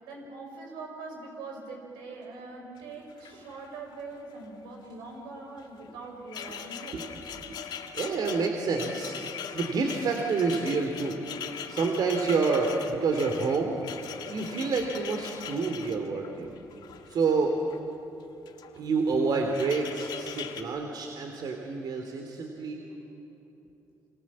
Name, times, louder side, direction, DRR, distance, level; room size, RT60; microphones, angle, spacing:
voice 1, 0.0-7.0, right 3 dB, 90° right, 1 dB, 6.0 m, -42 dB
sound 1, 2.8-2.9 3.1-3.9 4.2-4.5 5.6-17.8 18.4-18.8 19.1-20.6, left 8 dB, 70° left, 2.0 m, -41 dB
voice 2, 6.9-7.6 7.9-11.2 11.7-13.7 14.3-16.5 17.1-17.5 18.8-22.8, right 4 dB, 65° right, 3 dB, 3.0 m, -28 dB
27.0 x 27.0 x 7.5 m, 2.9 s
supercardioid pair, 60°, 8 cm